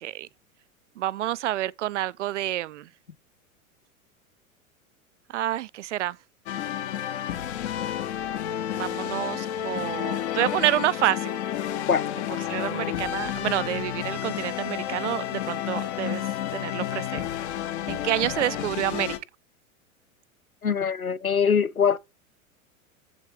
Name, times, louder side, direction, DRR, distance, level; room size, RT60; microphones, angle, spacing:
voice 1, 1.0-2.9 5.3-6.2 8.7-11.4 12.5-16.2 16.5-17.3 17.9-19.1, right 14 dB, 60° right, 0.5 m, -28 dB
sound 1, 6.5-19.2, left 11 dB, 50° left, 1.4 m, -31 dB
voice 2, 20.6-22.0, left 6 dB, 90° left, 0.7 m, -22 dB
8.0 x 5.9 x 4.7 m
figure-of-eight pair, 90°, 42 cm